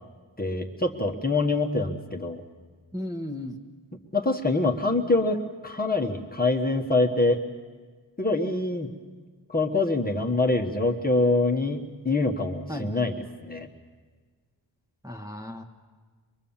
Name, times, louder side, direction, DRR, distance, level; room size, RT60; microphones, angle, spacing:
voice 1, 0.4-2.4 4.1-7.4 8.2-8.9 9.5-13.7, left 2 dB, 20° left, 1 dB, 1.3 m, -25 dB
voice 2, 2.9-3.5 12.7-12.9 15.0-15.6, left 1 dB, 5° right, 2 dB, 1.3 m, -34 dB
24.0 x 22.0 x 7.3 m, 1.5 s
wide cardioid pair, 110°, 48 cm